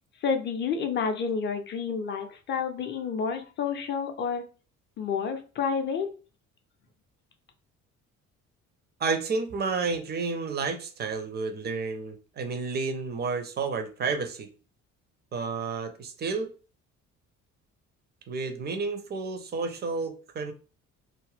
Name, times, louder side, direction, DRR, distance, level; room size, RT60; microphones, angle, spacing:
voice 1, 0.2-4.4 5.0-6.1, left 6 dB, 25° left, 6 dB, 0.5 m, -29 dB
voice 2, 9.0-14.5 15.3-16.5 18.3-20.5, right 4 dB, 25° right, 7 dB, 0.4 m, -31 dB
2.4 x 2.1 x 3.3 m, 0.36 s
figure-of-eight pair, 50°, 41 cm